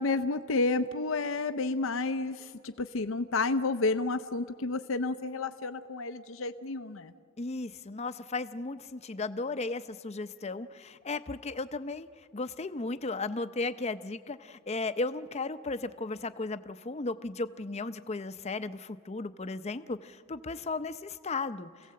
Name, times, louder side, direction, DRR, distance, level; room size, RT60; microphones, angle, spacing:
voice 1, 0.0-7.1, left 3 dB, 70° left, 9 dB, 0.6 m, -30 dB
voice 2, 7.4-12.1 12.3-21.7, left 3 dB, 30° left, 11 dB, 0.6 m, -35 dB
28.5 x 17.0 x 7.6 m, 2.2 s
head